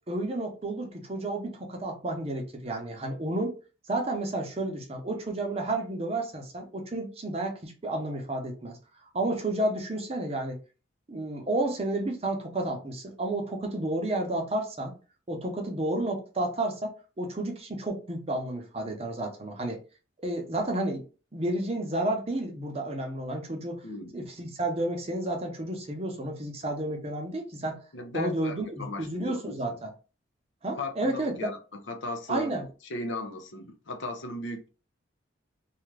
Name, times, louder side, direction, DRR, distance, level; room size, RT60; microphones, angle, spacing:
voice 1, 0.1-3.6 3.9-8.8 9.1-10.6 11.1-14.9 15.3-19.8 20.2-21.0 21.3-23.8 24.1-27.8 28.1-29.9 30.6-31.3 32.3-32.7, right 1 dB, 30° right, 0.7 m, -31 dB
voice 2, 23.8-24.1 27.9-29.8 30.8-32.5 32.9-34.7, left 2 dB, 70° left, 0.6 m, -37 dB
2.7 x 2.4 x 3.2 m
head